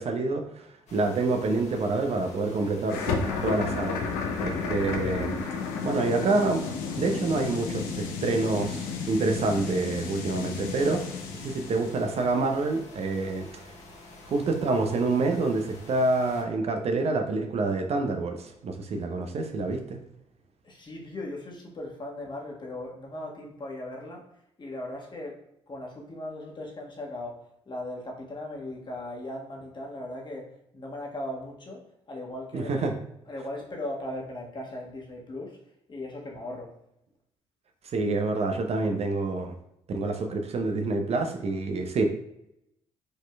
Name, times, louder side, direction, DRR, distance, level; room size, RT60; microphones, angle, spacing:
voice 1, 0.0-4.0 4.4-5.4 5.8-6.6 7.0-13.5 14.3-20.0 32.5-32.9 37.9-39.5 39.9-42.0, right 3 dB, 45° right, 5 dB, 0.7 m, -27 dB
sound 1, 0.9-16.4, left 2 dB, 50° left, 1.3 m, -49 dB
sound 2, 2.9-12.0, left 5 dB, 70° left, 0.7 m, -32 dB
voice 2, 20.6-24.3 24.6-25.4 25.7-33.0 33.2-36.8, left 1 dB, 30° left, -1 dB, 1.4 m, -38 dB
4.9 x 4.3 x 2.3 m, 0.80 s
hypercardioid pair, 50°, 15 cm